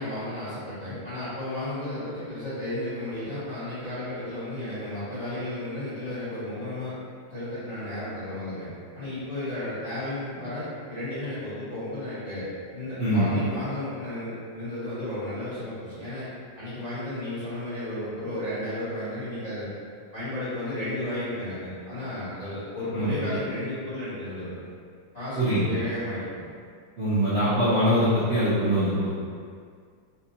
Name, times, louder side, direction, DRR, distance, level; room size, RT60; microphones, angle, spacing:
voice 1, 0.0-6.9 7.3-16.3 16.6-19.7 20.1-24.6 25.1-26.4, left 1 dB, 20° left, -15 dB, 1.3 m, -33 dB
voice 2, 27.0-29.1, equal, 65° right, -13 dB, 0.6 m, -23 dB
4.2 x 2.5 x 2.7 m, 2.1 s
omnidirectional pair, 2.4 m